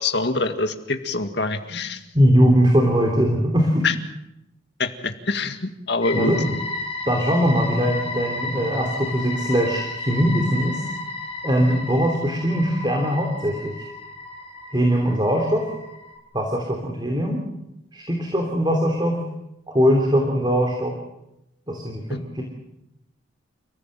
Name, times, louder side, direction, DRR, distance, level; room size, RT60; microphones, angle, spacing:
voice 1, 0.0-2.0 3.8-3.9 4.8-6.3, left 3 dB, 60° left, 7 dB, 2.0 m, -25 dB
voice 2, 2.1-3.9 6.1-6.6 7.1-10.8 11.4-13.9 14.7-15.7 16.3-17.4 17.9-19.2 19.7-20.9 21.7-22.4, equal, 25° right, 2 dB, 3.1 m, -21 dB
sound 1, 6.0-16.2, left 2 dB, 30° left, 4.3 m, -33 dB
29.5 x 15.5 x 7.7 m, 0.86 s
head